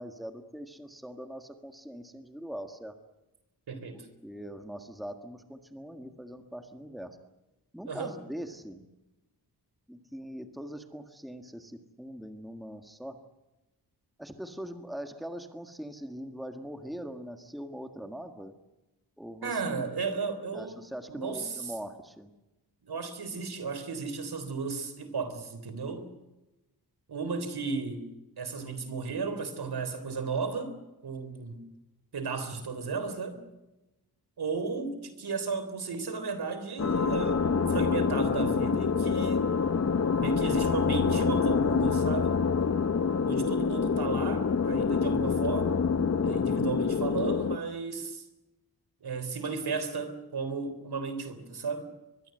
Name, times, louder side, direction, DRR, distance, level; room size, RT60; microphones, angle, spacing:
voice 1, 0.0-3.0 3.9-7.2 7.7-8.9 9.9-13.2 14.2-18.5 19.2-19.6 20.5-22.3, equal, ahead, 1.7 m, -42 dB
voice 2, 3.7-4.1 7.9-8.2 19.4-20.8 21.1-21.7 22.8-26.1 27.1-28.0 28.4-30.7 31.0-31.6 32.1-33.4 34.4-39.5 40.1-42.3 43.2-45.8 46.2-48.2 49.0-51.9, right 4 dB, 70° right, 3.6 m, -34 dB
sound 1, 36.8-47.6, left 5 dB, 40° left, 0.9 m, -26 dB
24.5 x 22.0 x 7.8 m
wide cardioid pair, 145°, 40 cm